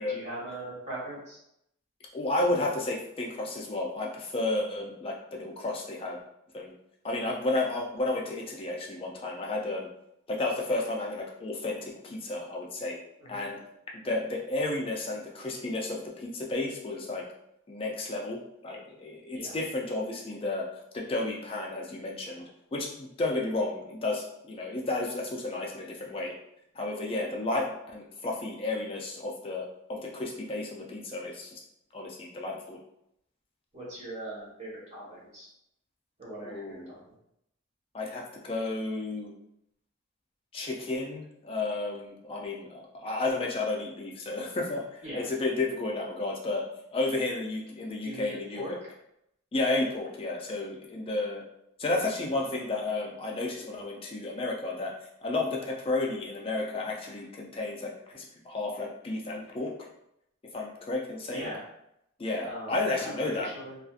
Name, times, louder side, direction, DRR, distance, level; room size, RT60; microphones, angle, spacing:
voice 1, 0.1-1.4 13.2-13.4 19.3-19.5 33.7-35.5 36.2-37.0 45.0-45.3 48.0-48.9 61.3-61.6 62.4-63.8, right 1 dB, 35° right, -8 dB, 1.2 m, -40 dB
voice 2, 2.1-6.2 6.5-6.7 7.0-9.9 10.3-13.0 13.3-13.6 14.0-17.2 17.7-20.7 20.9-26.3 26.8-31.6 31.9-32.8 36.4-36.9 37.9-39.3 40.5-46.7 46.9-48.8 49.5-51.4 51.8-54.9 55.2-59.7 60.4-61.5 62.2-63.5, left 2 dB, 25° left, -1 dB, 0.4 m, -32 dB
2.5 x 2.4 x 2.4 m, 0.79 s
head